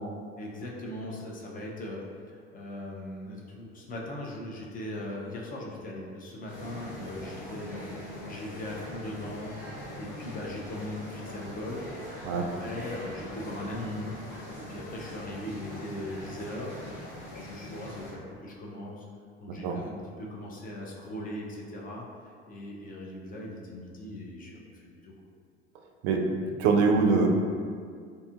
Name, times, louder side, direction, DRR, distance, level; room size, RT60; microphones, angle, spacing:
voice 1, 0.4-14.1 14.6-16.8 17.3-19.1 19.4-25.1, left 1 dB, 25° left, -3 dB, 0.4 m, -39 dB
sound 1, 6.5-18.1, left 1 dB, 75° left, 0.9 m, -42 dB
voice 2, 26.0-27.3, right 4 dB, 50° right, 2 dB, 0.4 m, -24 dB
2.6 x 2.4 x 2.4 m, 2.1 s
figure-of-eight pair, 65°, 33 cm